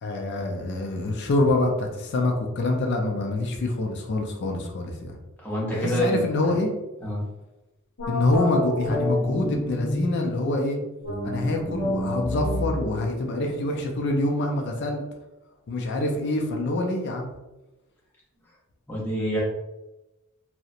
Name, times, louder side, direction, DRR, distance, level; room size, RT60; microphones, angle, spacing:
voice 1, 0.0-5.2 5.7-6.7 8.1-10.8 11.2-15.0 15.7-17.3, left 2 dB, 55° left, 2 dB, 0.4 m, -26 dB
voice 2, 5.4-6.2 7.0-7.2 18.9-19.4, equal, 10° left, -5 dB, 0.6 m, -26 dB
sound 1, 8.0-10.3 11.0-14.4, left 1 dB, 70° left, 0.7 m, -30 dB
2.8 x 2.1 x 2.4 m, 1.0 s
head